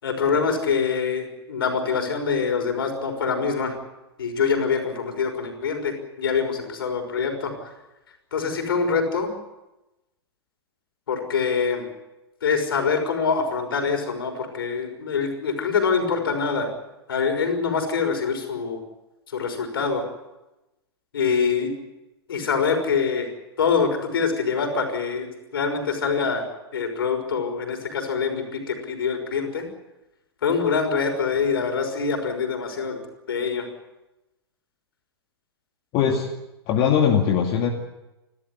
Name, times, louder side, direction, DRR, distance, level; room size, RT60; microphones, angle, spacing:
voice 1, 0.0-3.8 4.2-7.7 8.3-9.3 11.1-11.9 12.4-16.7 17.1-18.8 19.3-20.0 21.1-21.7 22.3-23.3 23.6-26.5 26.7-29.7 30.4-33.0 33.3-33.7, left 5 dB, 65° left, 5 dB, 5.8 m, -25 dB
voice 2, 35.9-36.3 36.7-37.7, left 7 dB, 35° left, 2 dB, 2.4 m, -20 dB
29.5 x 13.0 x 9.7 m, 0.99 s
figure-of-eight pair, 105°, 13 cm